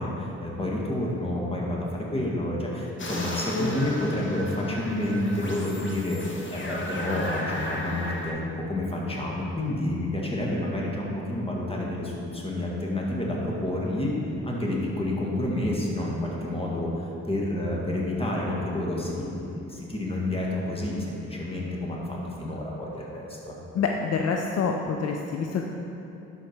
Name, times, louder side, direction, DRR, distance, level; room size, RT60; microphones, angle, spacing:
voice 1, 0.0-14.1 14.4-23.5, left 1 dB, 20° left, -3 dB, 1.8 m, -29 dB
sound 1, 3.0-8.3, left 1 dB, 40° left, 1.5 m, -34 dB
voice 2, 23.7-25.6, left 5 dB, 55° left, 2 dB, 0.6 m, -26 dB
11.5 x 4.7 x 4.5 m, 2.9 s
cardioid pair, 90°, 30 cm